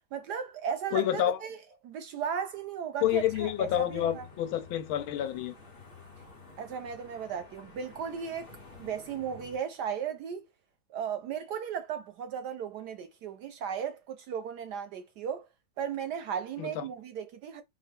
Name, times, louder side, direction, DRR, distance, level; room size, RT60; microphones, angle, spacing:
voice 1, 0.1-1.6 1.8-4.2 6.6-8.5 8.8-10.4 10.9-15.5 15.8-17.6, right 7 dB, 70° right, 1.0 m, -36 dB
voice 2, 0.9-1.4 3.0-5.5 16.6-16.8, left 11 dB, 80° left, 1.5 m, -28 dB
sound 1, 3.0-9.6, left 5 dB, 30° left, 1.3 m, -50 dB
5.5 x 2.6 x 3.6 m
omnidirectional pair, 2.2 m